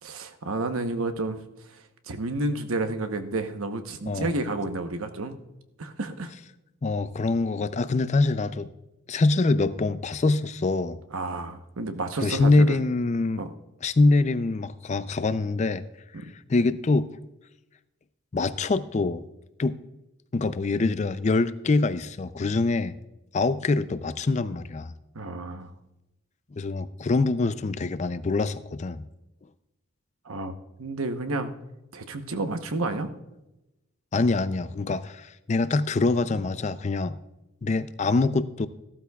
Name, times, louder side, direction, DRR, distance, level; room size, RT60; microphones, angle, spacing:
voice 1, 0.0-1.4 1.7-1.8 2.1-5.3 5.8-6.3 11.1-12.8 13.4-13.5 16.1-16.3 25.1-25.7 30.2-31.5 31.9-33.1, right 2 dB, 90° right, 7 dB, 1.0 m, -30 dB
voice 2, 6.8-8.7 9.1-11.0 12.2-13.4 13.8-15.8 16.5-17.1 18.3-19.2 19.6-19.8 20.3-22.9 23.3-24.9 26.6-29.0 34.1-37.2 37.6-38.7, left 3 dB, 35° left, 14 dB, 0.4 m, -24 dB
14.5 x 12.5 x 2.3 m, 0.94 s
head